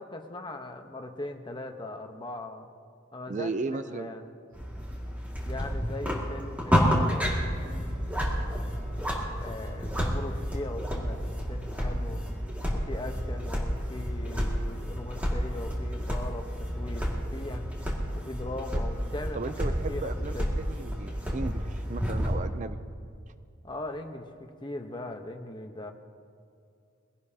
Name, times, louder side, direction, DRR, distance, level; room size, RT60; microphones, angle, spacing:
voice 1, 0.0-2.6 3.1-4.2 5.4-7.4 9.4-11.2 11.5-12.2 12.7-17.0 17.3-17.7 18.1-19.4 19.9-20.5 23.6-25.9, left 2 dB, 20° left, 5 dB, 1.0 m, -39 dB
voice 2, 3.3-4.1 18.7-18.8 19.3-22.8, right 3 dB, 35° right, 10 dB, 0.5 m, -35 dB
sound 1, 4.5-22.4, equal, 5° right, 2.0 m, -30 dB
22.5 x 17.0 x 2.8 m, 2.4 s
head